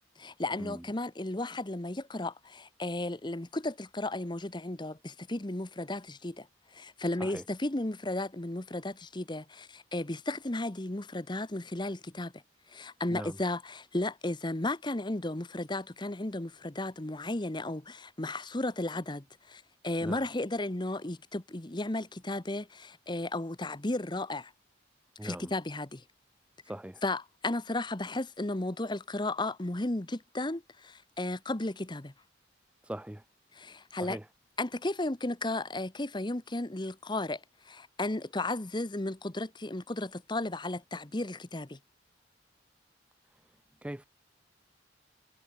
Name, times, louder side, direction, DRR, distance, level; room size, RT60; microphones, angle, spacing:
voice 1, 0.2-6.5 6.7-12.3 12.7-24.5 25.2-26.0 27.0-32.1 33.5-34.2 34.6-41.8, left 2 dB, 25° left, 1.1 m, -34 dB
voice 2, 25.2-25.5 26.7-27.0 32.8-33.2 34.0-34.3 43.8-44.1, right 1 dB, 5° right, 0.4 m, -40 dB
head